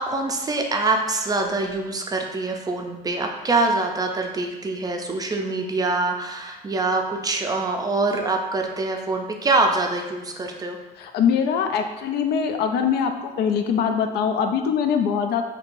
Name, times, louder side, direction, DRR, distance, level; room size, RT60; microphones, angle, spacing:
voice 1, 0.0-10.8, right 3 dB, 20° right, 3 dB, 0.4 m, -24 dB
voice 2, 11.0-15.4, left 7 dB, 70° left, 6 dB, 0.4 m, -22 dB
4.4 x 2.7 x 2.5 m, 1.1 s
cardioid pair, 110°, 17 cm